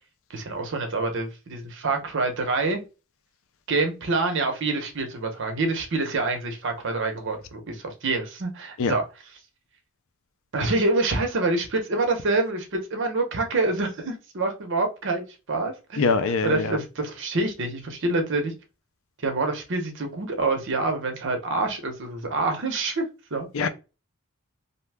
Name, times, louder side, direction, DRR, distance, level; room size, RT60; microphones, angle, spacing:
voice 1, 0.3-2.8 3.7-9.0 10.5-16.0 16.4-18.5 19.2-23.1 23.3-23.5, right 3 dB, 60° right, 0.8 m, -26 dB
voice 2, 16.0-16.8 23.5-23.7, left 4 dB, 65° left, 0.4 m, -23 dB
2.7 x 2.2 x 3.3 m
head